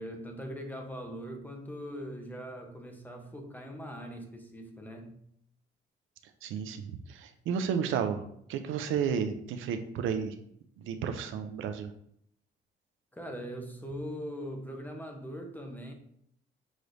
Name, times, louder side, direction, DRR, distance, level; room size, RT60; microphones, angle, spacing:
voice 1, 0.0-5.2 13.1-15.9, equal, 10° left, 3 dB, 0.8 m, -41 dB
voice 2, 6.4-10.4 10.8-11.9, right 7 dB, 80° right, 8 dB, 0.5 m, -32 dB
6.1 x 3.2 x 2.6 m, 0.70 s
cardioid pair, 90°, 20 cm